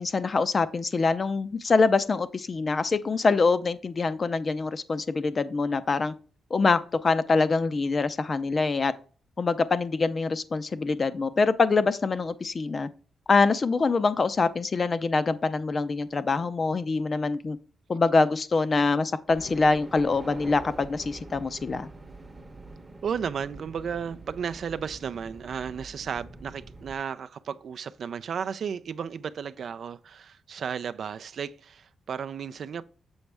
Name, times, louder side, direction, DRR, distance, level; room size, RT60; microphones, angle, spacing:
voice 1, 0.0-6.1 6.5-8.9 9.4-12.9 13.3-17.6 17.9-21.9, left 4 dB, 35° left, 0.5 m, -24 dB
sound 1, 19.3-27.0, right 2 dB, 20° right, 0.8 m, -45 dB
voice 2, 23.0-32.8, right 7 dB, 60° right, 0.3 m, -34 dB
7.1 x 5.2 x 3.4 m
wide cardioid pair, 125°, 0 cm